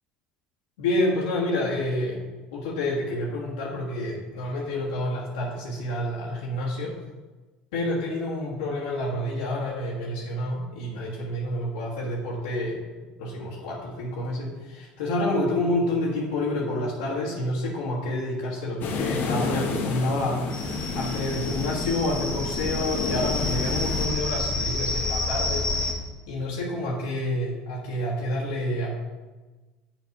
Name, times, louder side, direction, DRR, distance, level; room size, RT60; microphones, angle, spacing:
voice 1, 0.8-2.2 2.5-6.9 7.7-12.8 13.2-25.7 26.3-28.9, left 1 dB, 75° left, -5 dB, 1.3 m, -28 dB
sound 1, 18.8-24.1, left 3 dB, 55° left, 1.1 m, -31 dB
sound 2, 20.5-25.9, left 2 dB, 20° left, 1.3 m, -29 dB
7.1 x 4.0 x 4.7 m, 1.2 s
hypercardioid pair, 70°, 4 cm